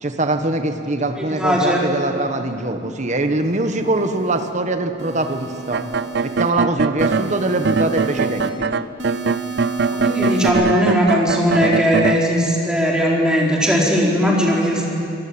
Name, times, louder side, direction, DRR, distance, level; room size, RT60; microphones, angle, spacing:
voice 1, 0.0-5.8 6.2-8.7, right 2 dB, 40° right, 7 dB, 1.3 m, -22 dB
voice 2, 1.2-1.8 9.9-14.9, equal, 5° right, -3 dB, 4.4 m, -18 dB
sound 1, 3.4-4.5 5.0-6.5 7.0-8.5 9.0-10.5, right 4 dB, 85° right, 2.9 m, -32 dB
sound 2, 5.7-7.3 7.6-12.2, right 5 dB, 60° right, 0.6 m, -22 dB
25.5 x 19.0 x 8.7 m, 2.6 s
head